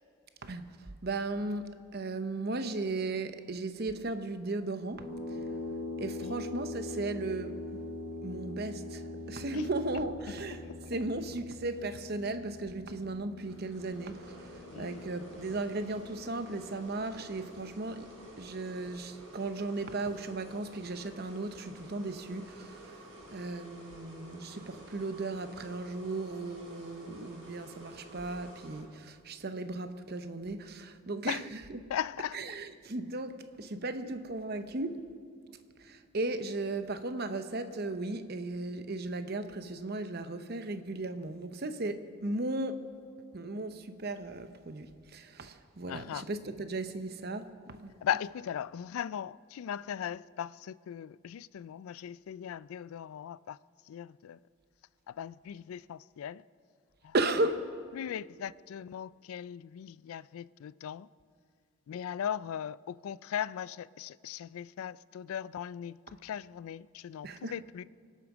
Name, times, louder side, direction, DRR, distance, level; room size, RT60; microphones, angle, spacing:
voice 1, 0.4-5.1 6.0-7.8 8.2-18.1 18.4-23.0 23.3-31.8 32.3-35.0 35.8-42.9 43.3-47.9 57.1-57.7 67.2-67.6, right 2 dB, 45° right, 0.8 m, -36 dB
sound 1, 5.0-18.1, left 2 dB, 10° right, 3.4 m, -43 dB
sound 2, 13.4-28.8, right 1 dB, 65° right, 5.2 m, -51 dB
voice 2, 14.7-15.0 31.3-31.4 31.9-32.4 45.9-46.2 48.0-53.6 53.9-54.4 55.1-56.4 57.0-57.1 57.9-61.1 61.9-67.8, left 9 dB, 80° left, 0.3 m, -38 dB
24.5 x 8.4 x 6.1 m
head